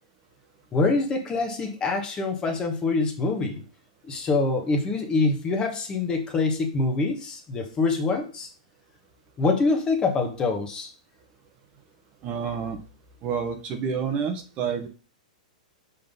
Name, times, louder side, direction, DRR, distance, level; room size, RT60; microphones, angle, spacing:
voice 1, 0.7-3.6 4.0-8.5 9.4-10.9, left 3 dB, 20° left, 4 dB, 1.3 m, -25 dB
voice 2, 12.2-12.8 13.2-14.9, right 6 dB, 30° right, 6 dB, 1.0 m, -29 dB
5.5 x 3.8 x 5.4 m, 0.35 s
hypercardioid pair, 145°, 4 cm